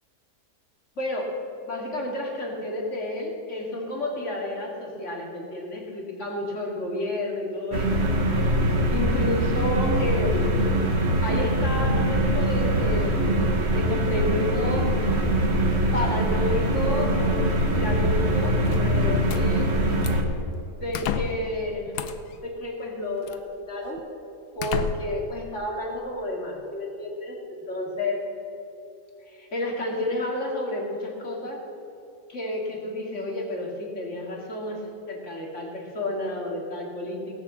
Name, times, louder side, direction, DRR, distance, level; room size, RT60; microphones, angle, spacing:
voice 1, 1.0-1.3 1.6-8.5 8.9-10.7 11.2-13.4 13.7-15.0 15.9-19.7 20.7-21.9 22.4-24.0 24.6-28.2 29.3-31.6 32.3-37.3, left 1 dB, 50° left, 0 dB, 2.5 m, -31 dB
sound 1, 7.7-20.2, right 1 dB, 45° right, 1.5 m, -23 dB
sound 2, 18.6-19.4 20.0-20.3 20.9-21.5 21.9-22.4 23.3-23.4 24.0-24.1 24.6-25.3, left 8 dB, 85° left, 1.3 m, -31 dB
18.0 x 7.0 x 7.2 m, 2.8 s
omnidirectional pair, 1.7 m